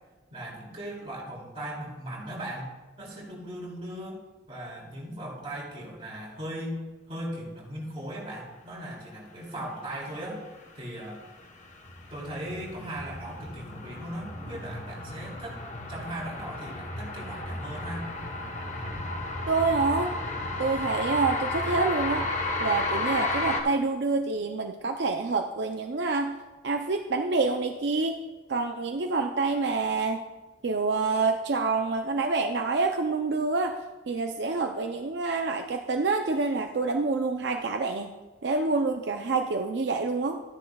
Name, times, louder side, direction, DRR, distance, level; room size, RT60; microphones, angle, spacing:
voice 1, 0.3-4.2 4.5-10.4 10.7-11.2 12.1-15.6 15.9-18.1, right 1 dB, 30° right, -4 dB, 2.6 m, -38 dB
sound 1, 10.8-23.6, left 2 dB, 40° left, 1.0 m, -33 dB
voice 2, 19.5-20.2 20.6-22.3 22.6-26.3 26.6-28.2 28.5-30.2 30.6-33.8 34.1-38.1 38.4-40.4, right 3 dB, 65° right, 4 dB, 0.5 m, -27 dB
13.5 x 10.0 x 2.3 m, 1.2 s
head